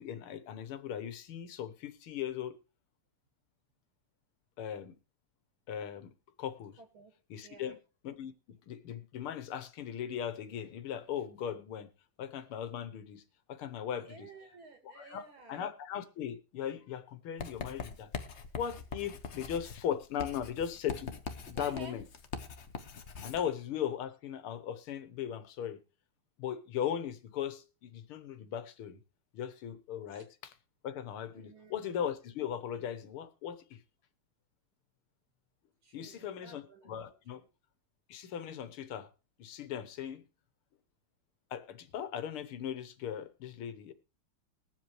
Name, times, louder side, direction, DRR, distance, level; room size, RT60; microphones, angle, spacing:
voice 1, 0.0-2.6 4.6-5.0 5.7-6.1 6.4-6.8 7.3-7.8 8.0-8.3 8.7-11.9 12.2-13.2 13.5-14.2 15.0-15.2 15.5-18.1 18.6-21.2 21.5-22.0 23.2-25.8 26.4-29.0 29.3-30.5 30.8-33.8 35.9-37.4 38.1-39.1 39.4-40.2 41.5-43.9, left 9 dB, 80° left, 2.0 m, -38 dB
voice 2, 6.8-7.1 7.4-7.8 13.9-15.7 21.5-22.0 30.1-30.2 31.3-31.8 35.8-36.9 37.3-37.5, right 3 dB, 70° right, 3.2 m, -53 dB
Writing, 17.4-23.5, left 5 dB, 45° left, 0.9 m, -42 dB
21.5 x 7.6 x 3.1 m
omnidirectional pair, 2.4 m